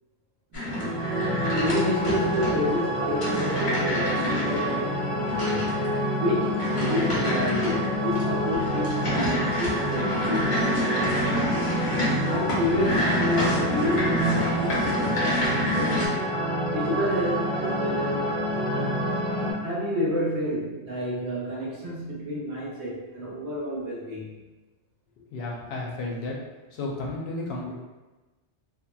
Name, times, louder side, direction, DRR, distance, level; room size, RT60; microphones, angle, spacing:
sound 1, 0.5-16.1, left 1 dB, 35° left, 0.6 m, -29 dB
sound 2, 0.6-19.5, equal, 5° left, 0.9 m, -27 dB
voice 1, 1.4-5.7 6.2-11.4 12.2-16.3 16.7-18.3 18.7-19.0 19.6-24.3, left 1 dB, 75° right, -4 dB, 1.0 m, -30 dB
voice 2, 25.2-26.4 26.7-27.7, left 2 dB, 70° left, -3 dB, 0.8 m, -33 dB
2.8 x 2.3 x 2.2 m, 1.2 s
omnidirectional pair, 1.2 m